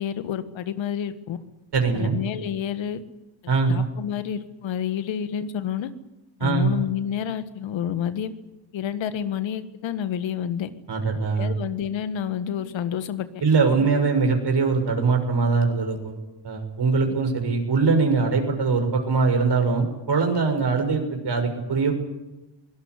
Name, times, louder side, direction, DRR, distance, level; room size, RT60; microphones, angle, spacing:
voice 1, 0.0-1.4 1.9-3.0 3.4-5.9 6.4-8.3 8.7-10.7 11.4-13.4 13.8-13.9, left 9 dB, 90° left, 11 dB, 1.6 m, -29 dB
voice 2, 1.7-2.2 3.5-3.8 6.4-6.7 10.9-11.5 13.4-16.1 16.4-21.9, right 4 dB, 65° right, 4 dB, 6.6 m, -22 dB
23.5 x 18.0 x 9.7 m, 1.0 s
supercardioid pair, 55°, 45 cm